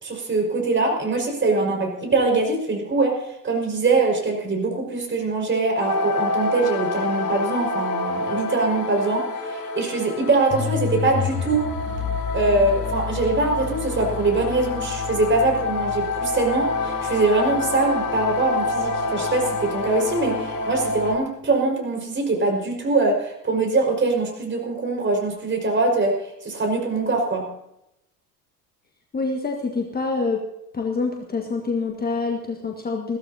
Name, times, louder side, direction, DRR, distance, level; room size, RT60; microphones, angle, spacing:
voice 1, 0.0-11.7 12.3-26.1 26.4-27.4, right 3 dB, 25° right, 1 dB, 5.3 m, -23 dB
sound 1, 5.8-21.1, left 3 dB, 45° left, 4.8 m, -27 dB
voice 2, 29.1-30.4 30.7-33.2, left 4 dB, 20° left, 2 dB, 1.7 m, -26 dB
21.5 x 15.5 x 2.8 m, 0.83 s
figure-of-eight pair, 70°, 49 cm